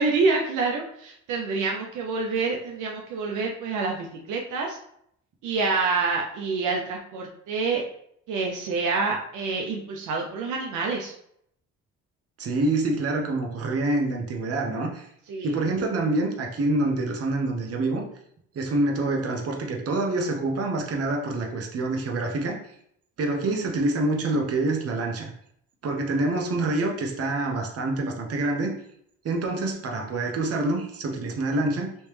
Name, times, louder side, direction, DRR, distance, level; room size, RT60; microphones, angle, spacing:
voice 1, 0.0-4.8 5.4-7.8 8.3-11.1 15.3-15.5, right 4 dB, 80° right, 0 dB, 0.7 m, -27 dB
voice 2, 12.4-15.1 15.4-18.0 18.5-22.6 23.2-25.3 25.8-28.7 29.2-31.9, right 2 dB, 50° right, 1 dB, 0.9 m, -26 dB
3.1 x 3.1 x 3.3 m, 0.69 s
cardioid pair, 90°, 30 cm